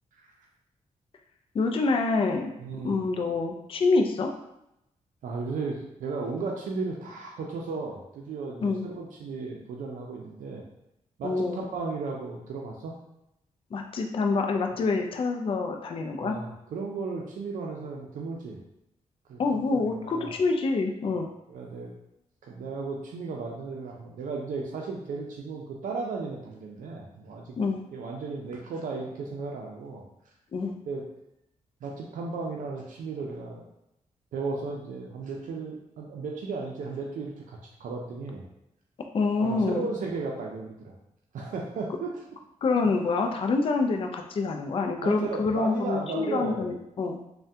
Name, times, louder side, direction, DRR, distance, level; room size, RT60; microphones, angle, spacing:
voice 1, 1.5-2.5 2.8-4.3 8.6-8.8 11.2-11.6 13.7-16.4 19.4-21.3 27.6-27.8 30.5-30.7 39.1-39.9 42.6-47.2, left 3 dB, 45° left, 3 dB, 0.4 m, -26 dB
voice 2, 2.6-3.0 5.2-10.6 11.2-12.9 16.2-18.6 19.3-20.4 21.5-21.9 22.4-27.6 27.9-30.0 30.8-31.0 31.8-33.6 34.3-38.5 39.4-40.9 41.3-42.2 45.0-46.6, right 4 dB, 80° right, -1 dB, 0.4 m, -35 dB
3.3 x 2.1 x 2.7 m, 0.84 s
cardioid pair, 70°, 13 cm